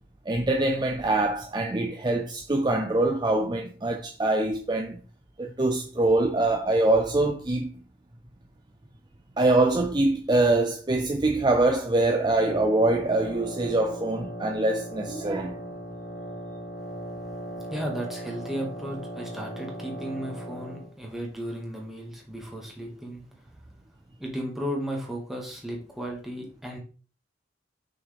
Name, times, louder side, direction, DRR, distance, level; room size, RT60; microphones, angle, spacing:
voice 1, 0.3-5.0 5.4-7.7 9.4-15.6, right 2 dB, 25° right, 0.5 m, -24 dB
Wind instrument woodwind instrument, 12.4-20.9, right 1 dB, 70° left, 1.2 m, -38 dB
voice 2, 17.7-23.2 24.2-26.8, equal, ahead, 1.8 m, -34 dB
6.2 x 6.1 x 3.4 m
head